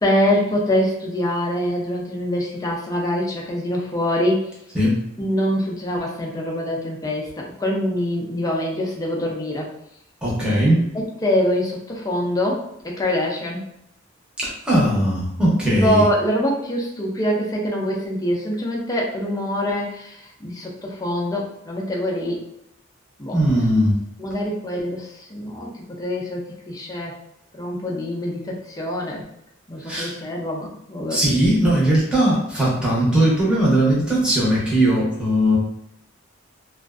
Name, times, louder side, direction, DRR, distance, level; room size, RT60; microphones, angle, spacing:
voice 1, 0.0-4.4 5.2-9.7 10.9-13.6 15.8-22.4 23.2-23.4 24.2-25.7 26.0-27.1 27.5-29.2 29.7-31.2, equal, 20° left, -2 dB, 0.4 m, -24 dB
voice 2, 10.2-10.9 14.4-16.0 23.3-24.0 29.8-30.2 31.1-35.6, right 1 dB, 5° right, -7 dB, 0.8 m, -19 dB
2.5 x 2.3 x 2.4 m, 0.78 s
head